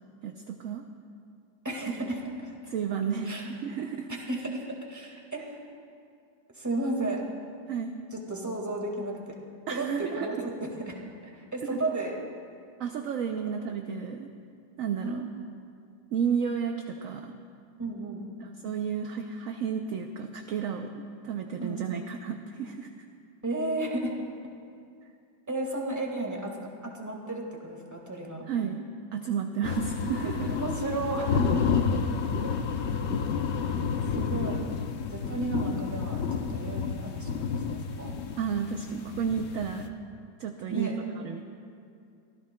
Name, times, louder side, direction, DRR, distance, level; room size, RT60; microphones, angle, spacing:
voice 1, 0.2-0.8 2.0-2.1 2.7-4.1 7.7-8.0 9.7-10.3 11.7-11.8 12.8-14.3 14.8-15.2 16.1-17.3 18.4-22.9 28.5-28.9 29.1-30.5 38.4-39.9 40.4-40.9 41.2-41.4, right 7 dB, 65° right, 4 dB, 0.8 m, -32 dB
voice 2, 1.6-2.7 3.2-3.5 4.3-5.7 6.5-7.2 8.1-9.4 9.7-12.1 15.0-15.3 17.8-18.3 21.6-21.9 23.4-24.1 25.5-28.4 29.7-29.9 30.5-31.8 32.4-32.5 34.1-34.7 35.1-38.1 40.7-40.9, right 2 dB, 10° right, -1 dB, 1.5 m, -34 dB
sound 1, 29.6-39.9, left 6 dB, 65° left, 0.7 m, -30 dB
24.0 x 15.0 x 2.2 m, 2.4 s
omnidirectional pair, 1.9 m